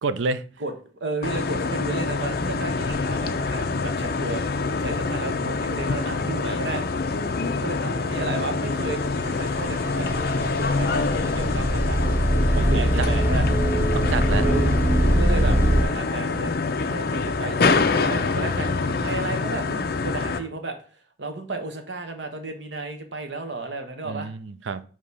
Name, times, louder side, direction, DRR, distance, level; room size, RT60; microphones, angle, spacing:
voice 1, 0.0-0.4 12.6-13.1 13.9-14.4 24.0-24.8, right 4 dB, 90° right, 0.5 m, -28 dB
voice 2, 0.6-4.4 4.8-7.1 7.6-12.0 12.5-13.5 14.4-14.7 15.2-16.5 16.9-20.8 21.2-24.3, right 3 dB, 75° right, 1.1 m, -33 dB
sound 1, 1.2-20.4, left 4 dB, 55° left, 0.6 m, -25 dB
sound 2, 9.0-15.8, right 1 dB, 15° right, 0.7 m, -22 dB
6.5 x 3.0 x 5.3 m
head